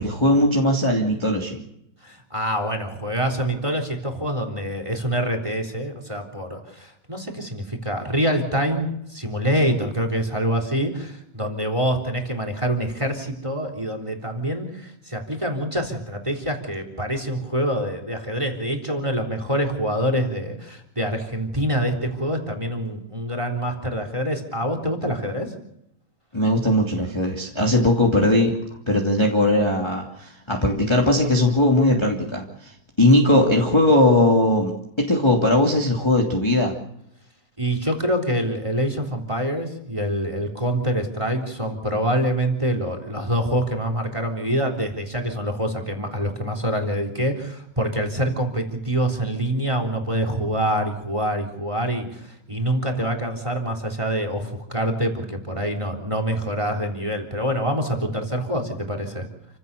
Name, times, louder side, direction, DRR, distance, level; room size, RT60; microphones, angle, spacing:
voice 1, 0.0-1.6 26.3-28.6 28.9-34.7 35.0-36.7, left 1 dB, 10° left, -1 dB, 2.3 m, -19 dB
voice 2, 2.0-25.5 37.6-59.3, equal, 10° right, 6 dB, 3.5 m, -25 dB
29.5 x 16.0 x 6.9 m, 0.79 s
omnidirectional pair, 3.5 m